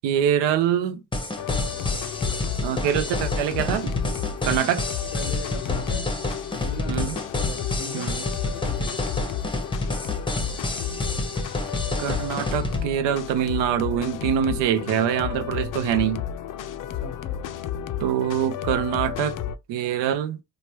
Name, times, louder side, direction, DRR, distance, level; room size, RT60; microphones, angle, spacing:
voice 1, 0.0-1.0 2.6-3.9 4.4-4.9 6.9-7.2 7.9-8.2 12.0-16.2 18.0-19.4 19.7-20.4, right 9 dB, 75° right, 0.6 m, -24 dB
sound 1, 1.1-12.8, left 2 dB, 10° left, 0.7 m, -29 dB
sound 2, 1.4-19.6, left 9 dB, 50° left, 0.5 m, -32 dB
voice 2, 5.1-6.2 6.5-9.1 16.9-17.4, left 5 dB, 85° left, 0.7 m, -39 dB
3.1 x 2.1 x 3.0 m
hypercardioid pair, 50°, 43 cm